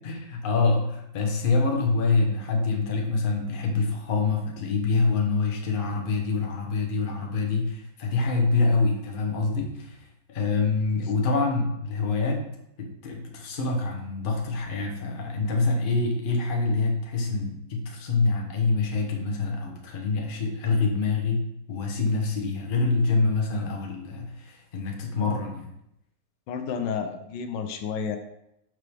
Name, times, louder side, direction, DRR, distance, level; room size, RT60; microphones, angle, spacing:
voice 1, 0.0-12.4 12.8-25.7, left 3 dB, 40° left, 1 dB, 0.8 m, -26 dB
voice 2, 26.5-28.2, left 6 dB, 80° left, 7 dB, 1.3 m, -31 dB
6.1 x 4.6 x 3.4 m, 0.82 s
omnidirectional pair, 2.0 m